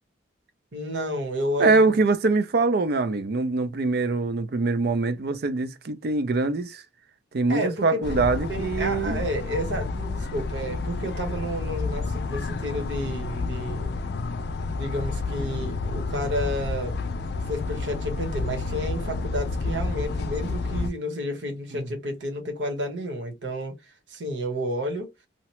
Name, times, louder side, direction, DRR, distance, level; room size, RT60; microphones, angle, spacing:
voice 1, 0.7-1.9 7.5-8.2 8.5-13.9 14.7-16.9 17.5-25.1, equal, 80° right, 1.1 m, -31 dB
voice 2, 1.6-6.8 7.3-9.2 21.7-21.9, right 3 dB, 55° right, 0.4 m, -23 dB
sound 1, 8.0-20.9, left 3 dB, 60° left, 0.4 m, -30 dB
2.8 x 2.1 x 2.9 m
head